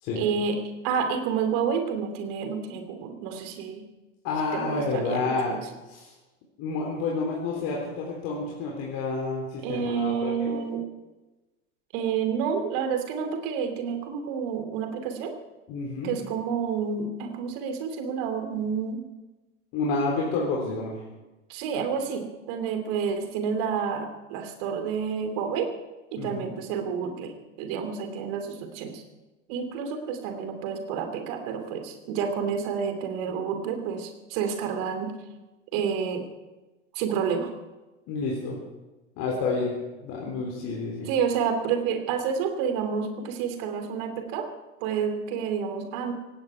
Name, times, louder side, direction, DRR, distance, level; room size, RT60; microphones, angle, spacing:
voice 1, 0.2-3.8 4.5-5.6 9.6-10.8 11.9-15.3 16.0-19.1 21.5-25.7 26.1-29.0 29.5-35.2 35.7-36.2 36.9-37.5 41.1-44.5 44.8-46.1, right 6 dB, 45° right, 7 dB, 3.0 m, -29 dB
voice 2, 4.2-5.6 5.9-6.1 6.6-10.6 15.7-16.1 19.7-21.0 26.2-26.5 38.1-38.6 39.2-39.7 40.0-41.1, left 3 dB, 40° left, -2 dB, 3.6 m, -29 dB
18.0 x 17.0 x 4.7 m, 1.1 s
figure-of-eight pair, 85°, 38 cm